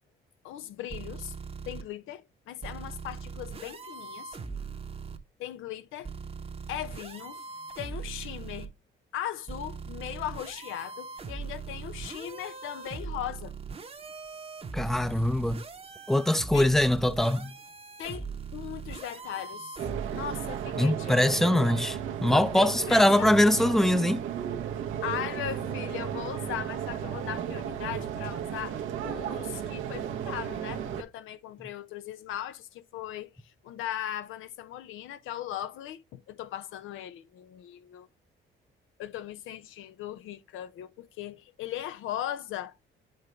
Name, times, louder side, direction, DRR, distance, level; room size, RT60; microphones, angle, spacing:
voice 1, 0.4-1.3 1.7-4.4 5.4-6.1 6.7-7.4 7.8-8.7 9.1-13.5 16.5-16.7 18.0-18.3 18.5-19.8 20.1-21.4 22.3-23.6 25.0-38.1 39.0-42.7, left 11 dB, 85° left, 0.6 m, -38 dB
sound 1, 0.9-1.8 2.6-5.2 6.0-8.7 9.5-20.7, right 5 dB, 30° right, 0.8 m, -40 dB
voice 2, 14.7-15.6 16.1-17.6 20.8-24.2, left 1 dB, ahead, 0.5 m, -23 dB
sound 2, 19.8-31.0, right 9 dB, 90° right, 0.9 m, -34 dB
7.8 x 3.9 x 3.3 m
cardioid pair, 90°, 20 cm